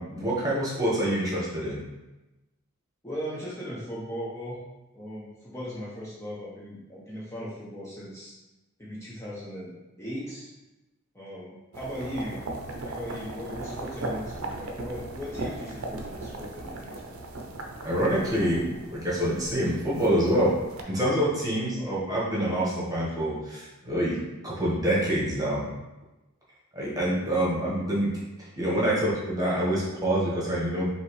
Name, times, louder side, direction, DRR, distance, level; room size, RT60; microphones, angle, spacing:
voice 1, 0.0-1.8 17.8-20.5 20.9-24.2 24.4-25.7 26.7-28.1 28.4-30.9, right 1 dB, 15° right, -6 dB, 1.3 m, -26 dB
voice 2, 3.0-4.6 4.9-8.3 8.8-10.5 11.1-12.4 12.9-17.1 21.6-22.0, equal, 15° left, -8 dB, 0.8 m, -38 dB
sound 1, 11.7-20.8, right 2 dB, 85° right, 0.7 m, -38 dB
5.4 x 2.9 x 3.2 m, 1.0 s
head